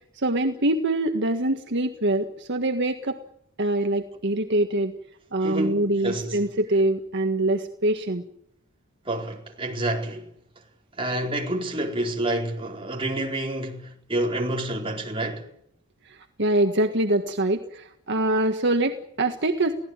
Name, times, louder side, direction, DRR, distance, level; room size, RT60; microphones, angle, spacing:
voice 1, 0.2-3.2 3.6-4.9 5.3-8.2 16.1-19.8, right 1 dB, 55° right, 1.7 m, -24 dB
voice 2, 5.4-6.4 9.0-10.3 11.0-15.5, right 1 dB, 25° right, 4.6 m, -28 dB
24.5 x 17.0 x 9.1 m
head